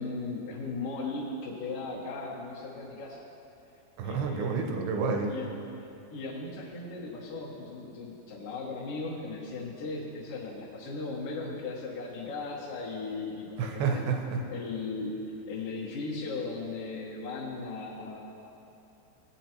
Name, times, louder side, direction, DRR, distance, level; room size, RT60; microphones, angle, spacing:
voice 1, 0.0-3.2 4.0-4.6 5.3-5.5 5.8-14.0 14.5-15.2 15.5-18.5, left 3 dB, 65° left, -9 dB, 2.4 m, -37 dB
voice 2, 4.0-5.3 13.6-14.4, right 5 dB, 75° right, 3 dB, 2.6 m, -29 dB
18.5 x 9.1 x 3.0 m, 2.8 s
omnidirectional pair, 5.3 m